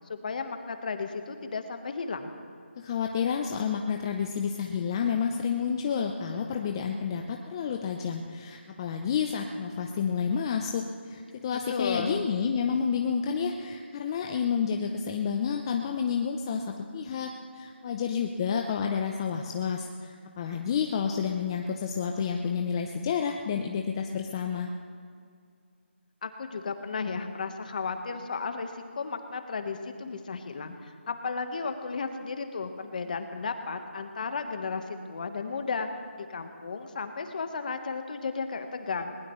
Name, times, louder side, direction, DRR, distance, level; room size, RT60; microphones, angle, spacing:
voice 1, 0.1-2.3 11.7-12.2 26.2-35.9 36.1-39.2, left 4 dB, 40° left, 7 dB, 1.3 m, -34 dB
voice 2, 2.8-24.7, left 6 dB, 20° left, 3 dB, 0.6 m, -30 dB
20.5 x 19.5 x 3.2 m, 2.3 s
figure-of-eight pair, 165°, 6 cm